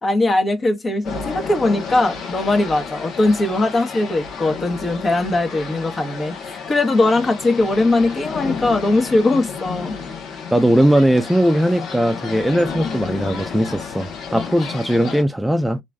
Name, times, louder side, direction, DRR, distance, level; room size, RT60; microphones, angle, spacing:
voice 1, 0.0-9.9, left 2 dB, 35° left, 1.0 m, -20 dB
sound 1, 1.0-15.2, left 5 dB, 70° left, 0.9 m, -31 dB
voice 2, 10.5-15.8, equal, 5° right, 0.5 m, -18 dB
3.0 x 2.6 x 2.2 m
hypercardioid pair, 55°, 0 cm